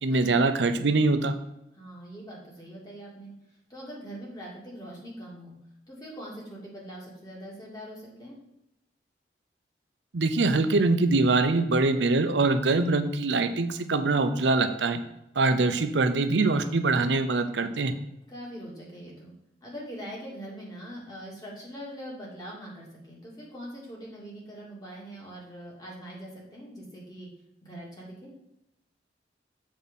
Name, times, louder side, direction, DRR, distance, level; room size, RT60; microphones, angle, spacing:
voice 1, 0.0-1.4 10.1-15.0 15.4-17.9, right 3 dB, 85° right, 9 dB, 0.6 m, -23 dB
voice 2, 1.7-5.5 5.9-8.3 18.3-19.3 19.6-27.3 27.6-28.3, equal, 20° left, -4 dB, 2.2 m, -42 dB
7.3 x 4.3 x 5.3 m, 0.85 s
head